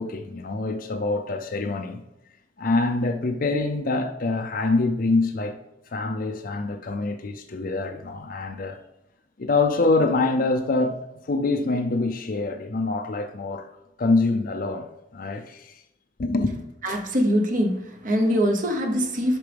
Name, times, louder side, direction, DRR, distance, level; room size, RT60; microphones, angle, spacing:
voice 1, 0.0-2.0 2.6-5.6 5.9-8.8 9.4-13.7 14.0-14.9 15.1-15.8 16.2-16.6, left 3 dB, 50° left, 0.5 m, -25 dB
voice 2, 16.8-19.4, equal, 45° right, 1.0 m, -23 dB
10.0 x 5.9 x 3.4 m
head